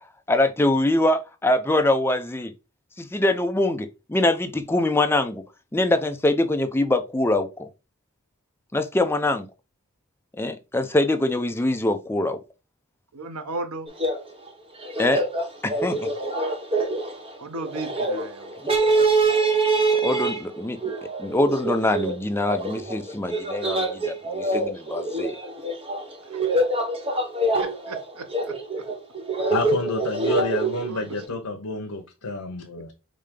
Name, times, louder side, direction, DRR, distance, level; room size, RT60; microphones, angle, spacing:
voice 1, 0.3-2.5 3.0-5.4 5.7-7.7 8.7-9.5 10.4-12.4 15.0-15.2 15.6-16.1 18.6-18.7 20.0-20.8 21.2-25.3, left 2 dB, 10° left, 0.5 m, -23 dB
voice 2, 13.1-13.9 17.4-18.5 26.3-26.4 27.6-28.6 30.9-31.2, right 3 dB, 80° right, 0.8 m, -35 dB
sound 1, 13.9-14.2 14.5-14.6 14.8-31.2, right 2 dB, 25° right, 0.9 m, -25 dB
voice 3, 29.5-32.9, left 2 dB, 85° left, 0.8 m, -29 dB
5.0 x 2.8 x 3.6 m
head